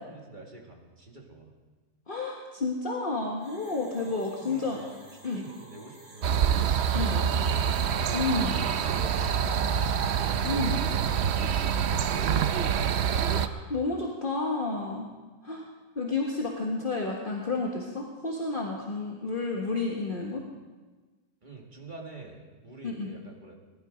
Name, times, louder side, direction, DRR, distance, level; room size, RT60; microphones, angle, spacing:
voice 1, 0.1-1.5 4.0-5.0 5.2-7.6 8.5-12.8 21.4-23.5, right 2 dB, 30° right, 0 dB, 2.2 m, -47 dB
voice 2, 2.1-4.8 5.2-5.4 6.9-7.3 8.1-8.6 10.4-10.8 13.2-15.1 15.4-15.7 15.9-20.4 22.8-23.1, left 3 dB, 35° left, -1 dB, 1.5 m, -31 dB
sound 1, 3.4-10.3, right 1 dB, 80° right, 6.7 m, -51 dB
sound 2, 6.2-13.5, right 8 dB, 60° right, 0.7 m, -26 dB
19.5 x 12.0 x 5.1 m, 1.3 s
omnidirectional pair, 1.7 m